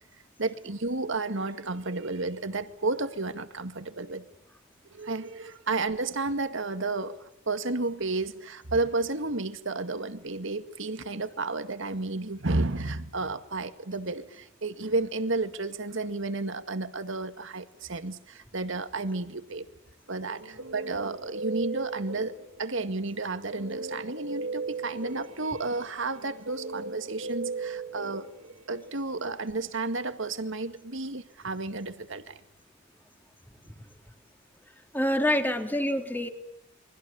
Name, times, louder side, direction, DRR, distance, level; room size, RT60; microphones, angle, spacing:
voice 1, 0.4-4.3 4.9-19.7 20.1-28.3 28.7-32.4, right 3 dB, 65° right, 2.1 m, -32 dB
Guitar, 20.2-22.7 23.5-28.9, right 3 dB, 85° right, 3.5 m, -37 dB
voice 2, 34.9-36.3, left 1 dB, 10° left, 3.1 m, -26 dB
29.0 x 24.5 x 7.1 m
head